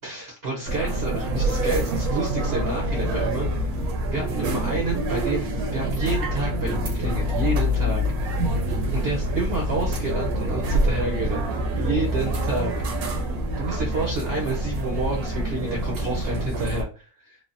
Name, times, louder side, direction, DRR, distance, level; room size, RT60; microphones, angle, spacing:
voice 1, 0.0-3.7 4.1-8.0 8.9-11.5 11.7-13.0 13.6-17.4, right 3 dB, 55° right, -1 dB, 0.7 m, -29 dB
sound 1, 0.7-16.8, equal, 75° right, 1.1 m, -26 dB
3.2 x 2.1 x 2.5 m, 0.37 s
omnidirectional pair, 1.6 m